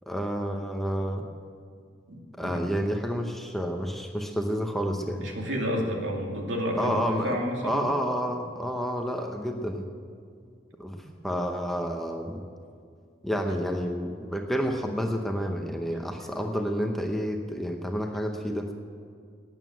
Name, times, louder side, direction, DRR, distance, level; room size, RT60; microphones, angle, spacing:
voice 1, 0.1-1.3 2.4-5.3 6.8-9.9 10.8-11.0 11.2-12.4 13.2-18.7, equal, ahead, 3 dB, 0.8 m, -30 dB
voice 2, 2.1-2.6 5.2-7.9 13.5-13.6, equal, 80° right, 0 dB, 2.5 m, -30 dB
12.0 x 9.3 x 9.3 m, 2.2 s
head